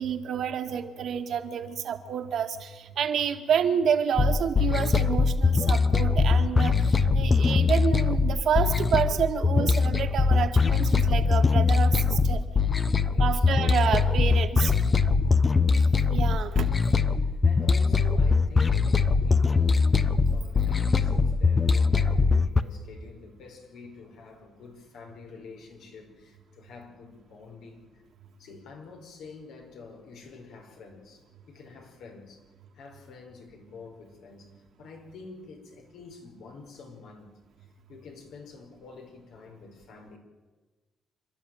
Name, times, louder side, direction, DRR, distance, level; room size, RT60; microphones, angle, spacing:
voice 1, 0.0-6.8 7.1-12.4 13.2-14.7 16.1-16.7, right 8 dB, 65° right, 6 dB, 2.1 m, -28 dB
sound 1, 4.2-22.6, left 4 dB, 30° left, 1.0 m, -22 dB
voice 2, 13.1-13.5 15.2-15.5 16.3-16.5 16.9-20.0 20.3-27.9 28.4-32.4 32.7-34.5 34.8-37.3 37.9-40.2, left 4 dB, 80° left, 2 dB, 5.3 m, -48 dB
28.0 x 12.0 x 9.3 m, 1.3 s
cardioid pair, 90°, 0 cm